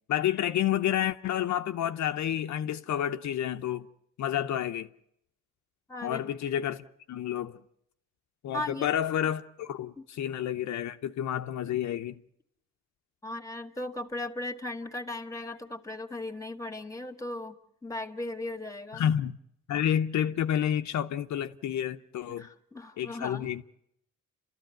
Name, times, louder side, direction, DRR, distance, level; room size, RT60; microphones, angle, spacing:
voice 1, 0.1-3.9 4.2-4.9 6.0-7.6 8.4-12.2 18.9-19.4 19.7-22.5 23.0-23.7, left 10 dB, 65° left, 0.8 m, -30 dB
voice 2, 5.9-6.2 8.5-8.9 10.0-10.1 13.2-19.1 22.4-23.5, left 2 dB, 10° left, 1.8 m, -37 dB
29.5 x 13.5 x 9.1 m
cardioid pair, 90°, 30 cm